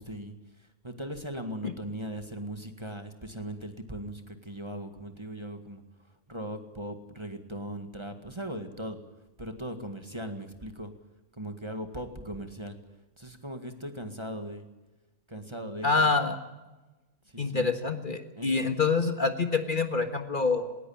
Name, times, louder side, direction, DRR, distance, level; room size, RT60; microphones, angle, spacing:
voice 1, 0.0-5.8 6.3-9.0 9.4-10.9 11.3-12.8 13.2-14.7 15.3-16.1 17.3-17.7 18.4-18.7, right 1 dB, 20° right, 7 dB, 1.9 m, -39 dB
voice 2, 15.8-16.4 17.4-20.8, left 4 dB, 40° left, 7 dB, 1.7 m, -26 dB
20.0 x 19.0 x 8.7 m, 1.1 s
omnidirectional pair, 1.4 m